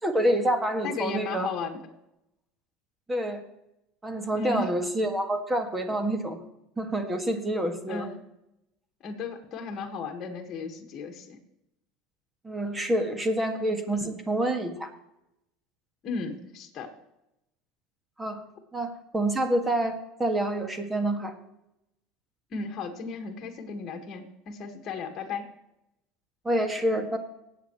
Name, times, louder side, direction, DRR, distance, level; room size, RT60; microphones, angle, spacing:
voice 1, 0.0-1.5 3.1-3.4 4.0-6.4 6.8-8.1 12.4-14.9 18.2-18.4 18.7-21.4 26.4-27.2, right 1 dB, 15° right, 6 dB, 1.9 m, -27 dB
voice 2, 0.8-1.8 4.3-4.7 7.9-8.2 9.0-11.4 14.0-14.1 16.0-16.9 22.5-25.5, left 4 dB, 40° left, 3 dB, 1.7 m, -35 dB
19.0 x 8.5 x 3.1 m, 0.86 s
supercardioid pair, 100°, 0 cm